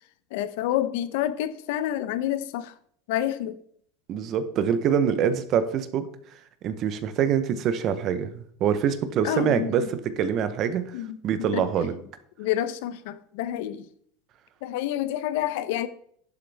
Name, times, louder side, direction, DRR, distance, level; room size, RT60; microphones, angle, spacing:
voice 1, 0.3-2.7 3.1-3.6 9.2-9.7 10.9-11.2 11.5-11.9 12.4-13.9 14.6-15.9, left 12 dB, 65° left, 0.7 m, -28 dB
voice 2, 4.1-6.1 6.6-10.9 11.2-11.9, right 8 dB, 35° right, 0.8 m, -25 dB
11.0 x 7.6 x 3.4 m
supercardioid pair, 175°, 0 cm